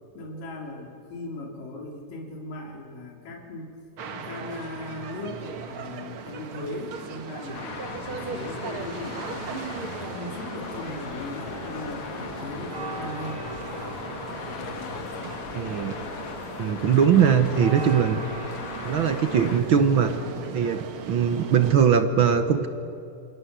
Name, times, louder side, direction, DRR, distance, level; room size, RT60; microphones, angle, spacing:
voice 1, 0.1-3.7 4.1-7.7 8.1-13.4, left 2 dB, 80° left, 0 dB, 5.0 m, -38 dB
sound 1, 4.0-21.8, right 5 dB, 50° right, 2.0 m, -38 dB
Traffic noise roadway noise, 7.5-19.6, left 6 dB, 60° left, 2.9 m, -39 dB
sound 2, 10.6-20.2, left 3 dB, 30° left, 2.3 m, -41 dB
voice 2, 15.5-15.9 16.6-18.2 18.8-20.1 20.5-22.7, right 7 dB, 65° right, 9 dB, 1.2 m, -21 dB
27.5 x 26.0 x 8.2 m, 2.7 s
omnidirectional pair, 3.9 m